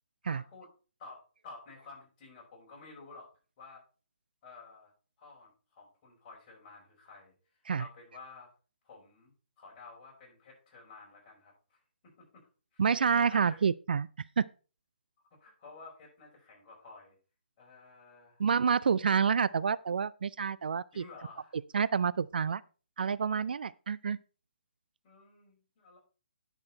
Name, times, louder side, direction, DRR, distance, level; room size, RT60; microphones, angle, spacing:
voice 1, 0.2-0.7 1.0-3.3 3.6-3.8 4.4-4.9 5.2-8.5 8.8-12.4 12.7-13.6 15.4-17.2 17.6-18.4 20.9-21.6 25.0-26.0, left 4 dB, 30° left, 5.2 m, -52 dB
voice 2, 12.8-14.1 14.4-14.5 18.4-21.0 21.7-22.6 23.0-24.2, right 6 dB, 60° right, 0.3 m, -28 dB
10.0 x 5.9 x 4.3 m
figure-of-eight pair, 140°, 6 cm